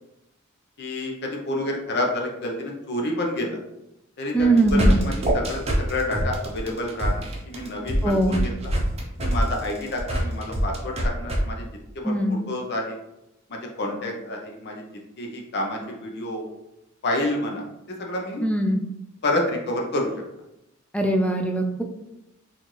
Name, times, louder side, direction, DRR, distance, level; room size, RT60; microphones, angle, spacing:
voice 1, 0.8-3.6 4.2-8.7 9.2-11.6 11.9-13.0 13.5-14.8 15.2-16.4 17.0-18.4 19.2-20.1, left 1 dB, 50° left, 0 dB, 0.6 m, -29 dB
voice 2, 4.3-5.0 8.0-8.4 12.0-12.4 18.4-18.8 20.9-21.8, right 2 dB, 5° left, 3 dB, 0.3 m, -21 dB
sound 1, 4.4-11.4, right 1 dB, 30° right, 0.7 m, -24 dB
4.2 x 2.5 x 3.0 m, 0.87 s
head